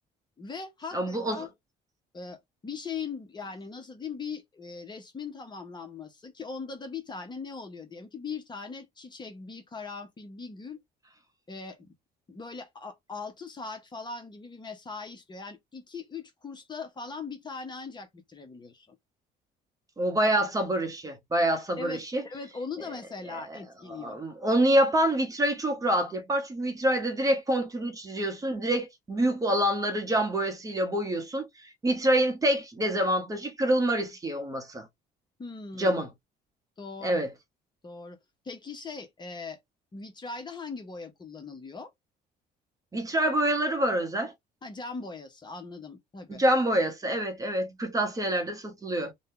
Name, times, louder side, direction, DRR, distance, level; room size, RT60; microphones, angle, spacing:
voice 1, 0.4-1.5 2.1-10.8 11.5-11.9 12.3-19.0 21.8-24.2 35.4-36.0 36.8-37.2 37.8-38.2 38.4-39.6 39.9-41.9 44.6-46.4, left 4 dB, 25° left, 0.8 m, -40 dB
voice 2, 0.9-1.5 20.0-22.2 23.3-23.6 23.9-34.9 35.8-36.1 37.0-37.3 42.9-44.3 46.3-49.1, right 1 dB, 20° right, 0.9 m, -26 dB
2.7 x 2.2 x 3.7 m
cardioid pair, 110°, 17 cm